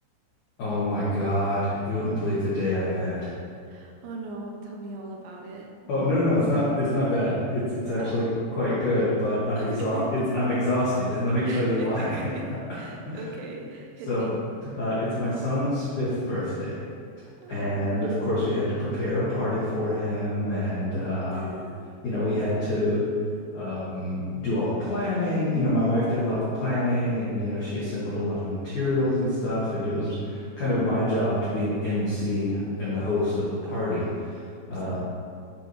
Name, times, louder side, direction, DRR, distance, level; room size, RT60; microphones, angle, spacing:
voice 1, 0.6-3.3 5.9-8.3 8.5-12.2 12.5-12.6 13.1-13.2 14.1-14.3 14.8-16.8 17.5-21.5 22.0-23.1 23.5-35.0, left 1 dB, 75° left, -11 dB, 1.7 m, -26 dB
voice 2, 3.7-5.7 8.0-8.3 9.6-10.3 11.4-12.5 12.7-14.4 17.4-18.0 21.3-21.9 34.7-35.0, right 2 dB, 80° right, -1 dB, 3.0 m, -39 dB
11.0 x 4.5 x 3.2 m, 2.3 s
omnidirectional pair, 6.0 m